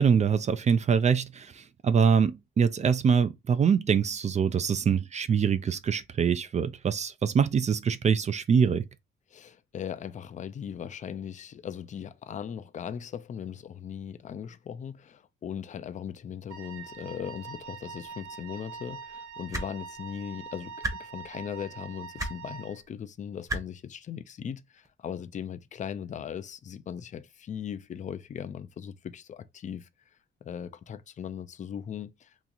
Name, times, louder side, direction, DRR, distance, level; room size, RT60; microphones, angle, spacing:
voice 1, 0.0-1.5 1.8-8.8, right 6 dB, 35° right, 0.4 m, -24 dB
voice 2, 9.3-20.7 21.0-29.9 30.4-32.3, left 8 dB, 40° left, 0.4 m, -38 dB
Wind instrument woodwind instrument, 16.5-22.8, right 6 dB, 80° right, 0.8 m, -44 dB
sound 1, 19.5-19.7 20.8-20.9 22.2-22.3 23.5-23.6 24.8-24.9, right 1 dB, 15° right, 0.9 m, -30 dB
3.0 x 2.4 x 3.9 m
cardioid pair, 90°, 20 cm